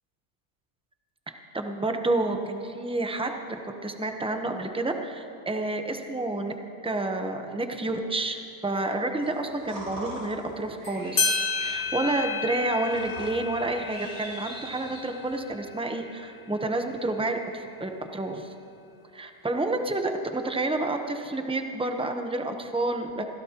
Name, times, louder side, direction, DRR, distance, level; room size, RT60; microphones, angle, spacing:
voice 1, 1.5-3.3 3.8-6.5 6.8-18.5 19.1-23.2, right 2 dB, 5° right, 4 dB, 0.5 m, -29 dB
sound 1, 9.2-15.4, right 1 dB, 70° right, 5.4 m, -43 dB
sound 2, 10.8-10.9 11.2-16.3, left 4 dB, 75° left, 2.5 m, -31 dB
25.5 x 16.0 x 2.9 m, 2.6 s
omnidirectional pair, 1.6 m